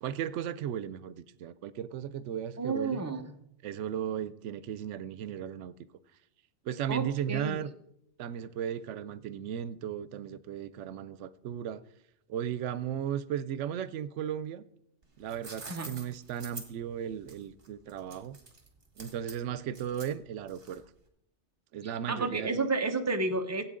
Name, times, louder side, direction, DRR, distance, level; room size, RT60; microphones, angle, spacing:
voice 1, 0.0-3.0 3.6-5.7 6.6-7.7 8.2-11.8 12.3-14.6 15.2-18.4 19.0-20.8 21.7-22.7, right 9 dB, 90° right, 0.9 m, -36 dB
voice 2, 2.6-3.3 6.9-7.6 15.7-15.9 22.1-23.6, right 3 dB, 15° right, 0.9 m, -31 dB
sound 1, 15.0-21.0, right 3 dB, 55° right, 2.0 m, -47 dB
16.0 x 8.5 x 3.7 m
omnidirectional pair, 1.2 m